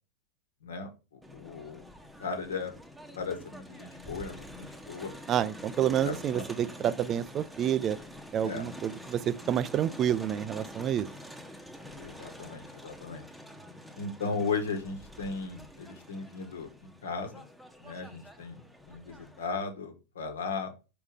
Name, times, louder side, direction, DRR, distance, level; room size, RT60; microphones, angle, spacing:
voice 1, 0.6-1.8 2.2-2.7 3.1-5.1 6.0-6.4 8.4-8.6 12.0-13.3 14.0-17.4 17.8-20.7, left 4 dB, 65° left, 1.4 m, -36 dB
Crowd, 1.2-19.5, equal, ahead, 0.9 m, -47 dB
voice 2, 5.3-8.0 8.3-11.1, right 10 dB, 30° right, 0.3 m, -29 dB
5.3 x 4.8 x 5.0 m
figure-of-eight pair, 90°, 0 cm